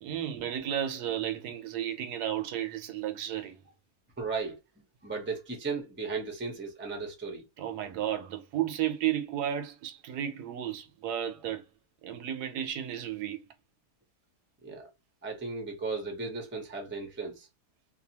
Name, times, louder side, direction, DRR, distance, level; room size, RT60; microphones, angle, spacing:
voice 1, 0.0-3.6 7.6-11.6 12.0-13.4, right 10 dB, 80° right, 1.1 m, -33 dB
voice 2, 4.2-4.6 5.0-7.4 14.6-14.9 15.2-17.5, right 4 dB, 15° right, 0.5 m, -35 dB
2.7 x 2.2 x 2.8 m
omnidirectional pair, 1.7 m